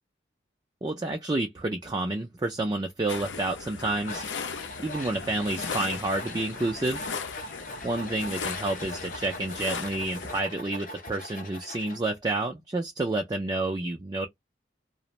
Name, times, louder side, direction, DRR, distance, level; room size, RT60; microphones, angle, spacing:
voice 1, 0.8-4.2 4.8-7.1 7.8-14.3, right 2 dB, 20° right, 0.3 m, -29 dB
sound 1, 3.1-10.4, left 5 dB, 85° left, 0.6 m, -37 dB
Tools, 4.1-12.0, left 2 dB, 45° left, 0.6 m, -41 dB
2.5 x 2.0 x 2.8 m
head